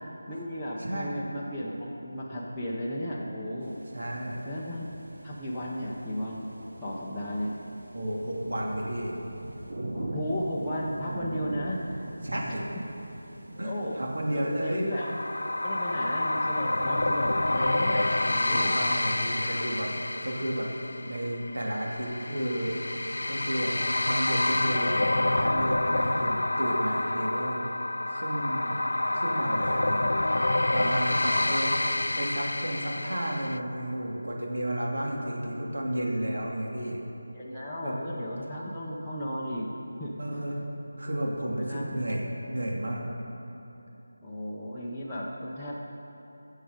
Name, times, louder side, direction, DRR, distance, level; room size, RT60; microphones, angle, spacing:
voice 1, 0.3-3.8 4.4-4.9 5.2-6.5 6.8-7.5 9.9-11.8 12.5-12.6 13.5-15.1 15.6-18.7 19.4-19.6 23.7-24.0 31.3-31.5 37.3-39.7 40.0-40.3 41.5-41.9 44.2-45.7, equal, 5° left, -11 dB, 0.6 m, -35 dB
voice 2, 0.8-1.2 3.9-4.4 7.9-9.1 12.2-12.6 13.6-14.9 18.5-19.9 20.2-20.7 21.1-22.8 23.3-23.8 24.0-27.6 28.1-28.8 29.1-30.5 30.7-37.0 37.8-38.0 40.2-40.6 41.0-43.1, right 1 dB, 80° right, -2 dB, 2.7 m, -32 dB
sound 1, 3.6-18.3, right 1 dB, 45° right, 1.2 m, -42 dB
sound 2, 14.9-33.6, left 2 dB, 80° left, 0.4 m, -28 dB
20.0 x 7.4 x 5.1 m, 3.0 s
figure-of-eight pair, 180°, 0 cm